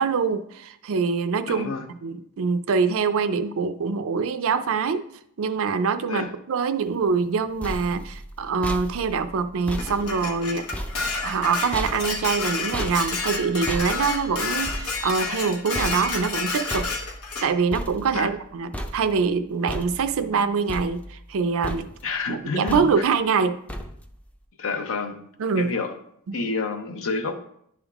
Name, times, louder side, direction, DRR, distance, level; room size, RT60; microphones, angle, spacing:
voice 1, 0.0-5.0 5.4-10.6 11.2-16.9 17.4-21.9 22.3-23.6 25.4-25.7 26.3-26.5, right 5 dB, 65° right, 11 dB, 0.5 m, -24 dB
voice 2, 1.5-1.8 6.1-6.3 18.1-18.3 22.0-23.0 24.6-25.2 25.5-26.0 26.3-27.4, left 4 dB, 65° left, 7 dB, 0.7 m, -29 dB
sound 1, 7.2-18.5 18.7-19.3 19.7-20.3 20.7-21.4 21.6-22.2 22.7-23.2 23.7-24.2, equal, 5° left, 0.5 m, -35 dB
Dishes pots and pans, 9.8-17.5, left 4 dB, 80° left, 1.1 m, -30 dB
10.5 x 3.6 x 3.5 m, 0.70 s
head